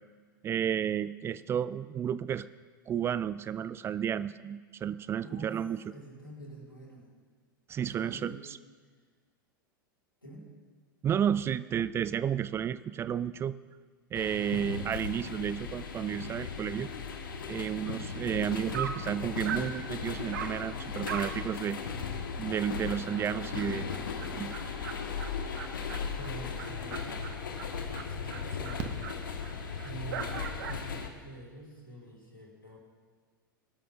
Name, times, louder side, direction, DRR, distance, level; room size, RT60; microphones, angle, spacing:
voice 1, 0.4-2.5 2.9-5.8 7.7-8.6 11.0-13.5 14.1-16.9 17.5-21.8 22.4-23.8 24.4-24.5, right 9 dB, 20° right, 16 dB, 0.4 m, -32 dB
voice 2, 5.1-5.6 5.8-7.2 7.9-8.4 10.2-10.4 23.2-24.5 26.1-29.4 29.8-32.8, right 1 dB, 90° left, -3 dB, 4.7 m, -47 dB
sound 1, 14.1-31.1, left 5 dB, 70° left, 1.3 m, -37 dB
Dog, 18.4-18.5 18.7-19.1 19.4-19.7 20.3-20.6 21.0-21.4 21.7-21.8 22.2-22.3 22.7-22.8 23.1-30.9, right 8 dB, 60° right, 1.1 m, -42 dB
Fireworks, 28.8-30.1 31.9-32.0 32.2-32.3, right 8 dB, 40° right, 1.0 m, -43 dB
22.0 x 12.5 x 2.4 m, 1.5 s
figure-of-eight pair, 90°, 12 cm